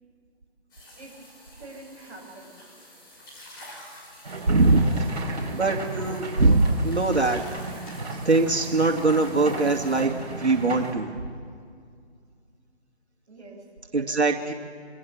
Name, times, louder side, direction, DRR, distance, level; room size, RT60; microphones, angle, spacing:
sound 1, 0.7-10.0, left 1 dB, 20° left, 6.1 m, -48 dB
voice 1, 1.5-2.5 13.3-13.6 13.9-14.4, right 2 dB, 10° right, -8 dB, 7.3 m, -45 dB
sound 2, 4.2-10.9, right 3 dB, 40° right, 5.0 m, -35 dB
voice 2, 4.5-4.8 5.5-7.4 8.2-10.1 10.4-11.1 13.9-14.5, right 3 dB, 80° right, 2 dB, 2.5 m, -21 dB
26.0 x 24.5 x 7.4 m, 2.2 s
figure-of-eight pair, 160°, 33 cm